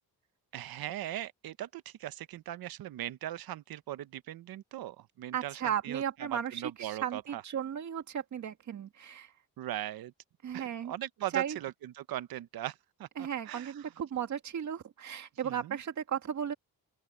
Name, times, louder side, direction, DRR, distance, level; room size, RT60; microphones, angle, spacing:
voice 1, 0.5-7.4 9.6-10.1 10.5-13.9 15.4-15.8, right 13 dB, 80° right, 1.0 m, -40 dB
voice 2, 5.3-9.3 10.4-10.9 11.3-11.6 13.2-16.5, right 9 dB, 55° right, 2.2 m, -35 dB
open air
wide cardioid pair, 180°, 35 cm